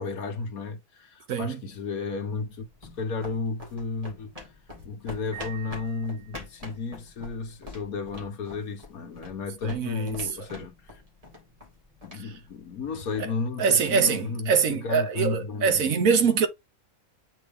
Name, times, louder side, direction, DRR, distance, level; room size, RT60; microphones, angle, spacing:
voice 1, 0.0-2.7 3.0-4.5 4.8-11.0 12.0-15.9, left 4 dB, 75° left, 1.6 m, -33 dB
voice 2, 1.3-1.6 9.6-10.2 12.1-12.2 13.2-13.3 13.6-16.5, right 6 dB, 65° right, 1.3 m, -24 dB
sound 1, 2.5-13.2, left 2 dB, 25° right, 2.1 m, -46 dB
Piano, 5.3-6.8, right 13 dB, 5° right, 3.3 m, -46 dB
8.0 x 3.5 x 3.5 m
omnidirectional pair, 1.6 m